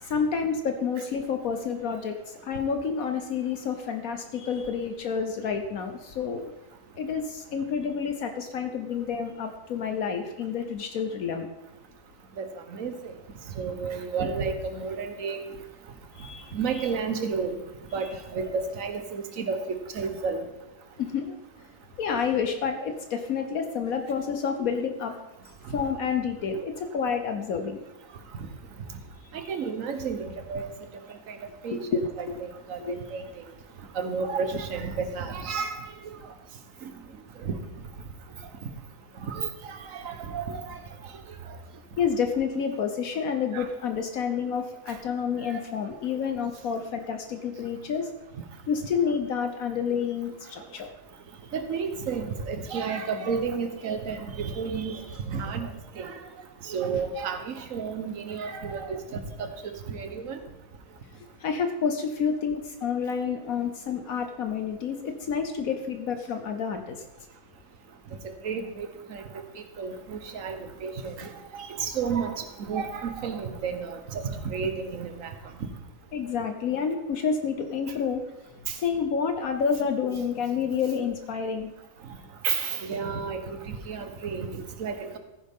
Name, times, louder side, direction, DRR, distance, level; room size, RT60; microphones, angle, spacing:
voice 1, 0.0-6.5 7.0-11.5 16.1-16.9 21.0-21.4 22.0-25.1 25.7-27.8 31.7-32.0 32.8-32.9 42.0-48.1 48.7-50.9 61.4-67.0 76.1-78.2 78.7-81.7, left 6 dB, 70° left, 6 dB, 1.3 m, -29 dB
voice 2, 12.4-13.1 13.6-15.4 16.5-17.6 17.9-19.6 19.9-20.4 29.3-30.7 31.3-31.4 31.6-33.2 33.9-35.8 36.8-36.9 37.4-37.5 39.2-40.8 43.5-43.7 45.5-45.6 51.5-55.0 55.3-55.7 56.0-56.2 56.6-60.4 68.4-69.2 69.6-75.3 78.7-78.8 82.4-85.2, right 5 dB, 60° right, 7 dB, 1.4 m, -32 dB
15.0 x 9.6 x 3.6 m, 0.96 s
omnidirectional pair, 1.6 m